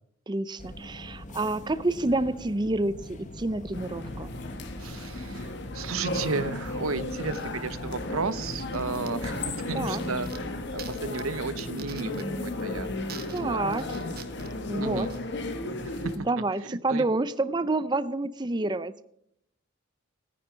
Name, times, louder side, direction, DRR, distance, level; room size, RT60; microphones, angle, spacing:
voice 1, 0.3-4.3 9.7-10.0 13.3-13.8 14.7-15.1 16.2-19.0, right 2 dB, 20° right, 14 dB, 0.5 m, -28 dB
sound 1, 0.6-11.0, left 1 dB, 35° left, 1.4 m, -44 dB
sound 2, 3.7-16.2, left 2 dB, 55° left, 1.7 m, -34 dB
voice 2, 4.8-12.9 13.3-13.6 14.8-15.1 15.8-16.3 16.7-17.1, right 4 dB, 90° right, 16 dB, 0.8 m, -34 dB
sound 3, 7.3-16.2, right 7 dB, 45° right, 1.4 m, -49 dB
17.0 x 9.8 x 6.1 m, 0.74 s
head